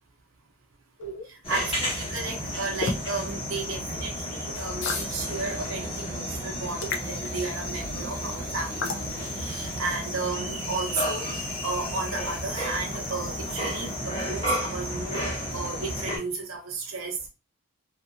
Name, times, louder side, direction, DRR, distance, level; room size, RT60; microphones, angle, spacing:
sound 1, 1.0-1.2 2.8-3.0 4.8-5.1 6.8-7.1 8.8-9.0, left 3 dB, 60° left, 0.6 m, -29 dB
voice 1, 1.3-15.3 15.5-17.3, right 3 dB, 70° right, 0.7 m, -34 dB
sound 2, 1.4-16.2, equal, 30° left, 1.1 m, -32 dB
2.9 x 2.6 x 2.5 m
head